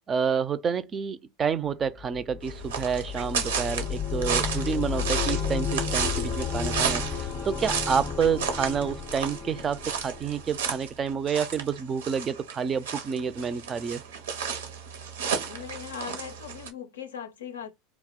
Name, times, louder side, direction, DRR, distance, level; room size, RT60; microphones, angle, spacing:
voice 1, 0.1-14.0, right 6 dB, 30° right, 0.3 m, -29 dB
sound 1, 1.8-10.7, left 7 dB, 30° left, 0.5 m, -32 dB
sound 2, 2.4-16.7, right 6 dB, 85° right, 0.6 m, -33 dB
voice 2, 15.4-17.7, left 8 dB, 85° left, 0.5 m, -39 dB
2.3 x 2.0 x 3.6 m
hypercardioid pair, 90°, 0 cm